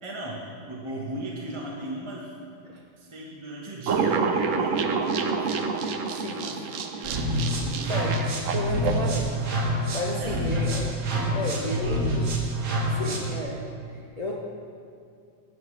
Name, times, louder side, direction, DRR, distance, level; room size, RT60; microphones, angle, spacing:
voice 1, 0.0-2.3 3.0-5.5 6.4-6.6 6.9-8.2 10.2-11.1 11.4-12.5, right 1 dB, 25° right, -4 dB, 0.8 m, -38 dB
sound 1, 3.9-9.1, right 5 dB, 85° right, 0.7 m, -28 dB
voice 2, 6.1-6.6 7.9-8.1 8.5-10.9 11.2-12.3 12.9-13.6 13.9-14.4, left 1 dB, 75° left, -4 dB, 0.3 m, -33 dB
sound 2, 7.0-13.4, right 1 dB, 60° right, 1.9 m, -27 dB
14.5 x 8.2 x 3.3 m, 2.4 s
omnidirectional pair, 2.1 m